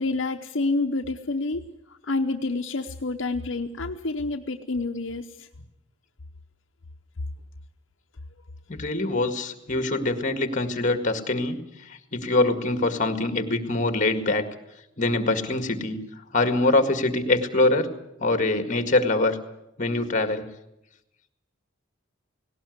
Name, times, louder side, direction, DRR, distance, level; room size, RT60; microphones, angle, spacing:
voice 1, 0.0-5.5, left 3 dB, 70° left, 4 dB, 0.9 m, -28 dB
voice 2, 8.7-14.5 15.0-16.0 16.3-17.9 18.2-19.4 19.8-20.5, left 2 dB, 40° left, 8 dB, 2.0 m, -24 dB
18.0 x 18.0 x 9.5 m, 0.87 s
head